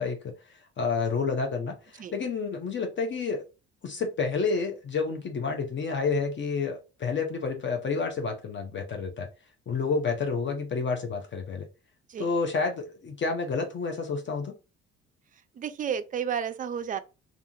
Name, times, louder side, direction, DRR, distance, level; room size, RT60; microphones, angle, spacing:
voice 1, 0.0-3.4 3.8-9.3 9.7-11.7 12.2-14.5, left 4 dB, 35° left, 0.6 m, -29 dB
voice 2, 15.6-17.0, right 8 dB, 25° right, 0.4 m, -31 dB
2.4 x 2.4 x 2.7 m
hypercardioid pair, 60°, 32 cm